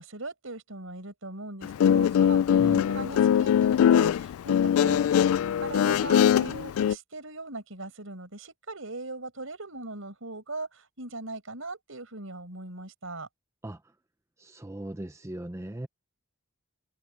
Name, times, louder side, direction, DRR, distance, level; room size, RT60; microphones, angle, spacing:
voice 1, 0.0-5.2 5.6-13.3, right 2 dB, 70° right, 5.5 m, -39 dB
Guitar, 1.6-6.9, left 9 dB, 85° left, 0.3 m, -22 dB
voice 2, 14.4-15.9, right 1 dB, 15° right, 0.6 m, -37 dB
head